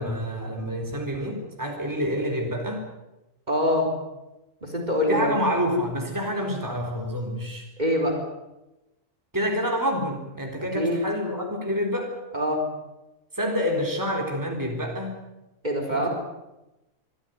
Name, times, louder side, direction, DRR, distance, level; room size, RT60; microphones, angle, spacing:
voice 1, 0.0-2.8 5.1-7.6 9.3-12.1 13.3-15.1 15.9-16.1, equal, 15° right, 0 dB, 4.0 m, -27 dB
voice 2, 3.5-3.9 4.6-5.3 7.8-8.2 10.7-11.0 12.3-12.6 15.6-16.1, equal, 35° right, 2 dB, 4.3 m, -24 dB
25.0 x 14.5 x 9.4 m, 0.99 s
omnidirectional pair, 1.4 m